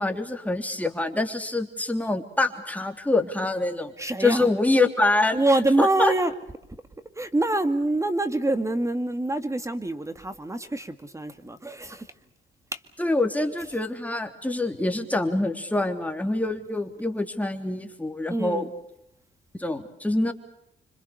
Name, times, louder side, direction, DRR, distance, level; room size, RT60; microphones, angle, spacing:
voice 1, 0.0-3.9 4.2-5.4 5.8-6.1 13.0-18.7 19.5-20.3, left 2 dB, 5° left, 3.3 m, -25 dB
voice 2, 4.0-4.5 5.3-6.3 7.2-12.1 12.7-12.8 18.3-18.7, right 2 dB, 15° right, 1.9 m, -25 dB
26.5 x 25.5 x 6.7 m
cardioid pair, 95°, 20 cm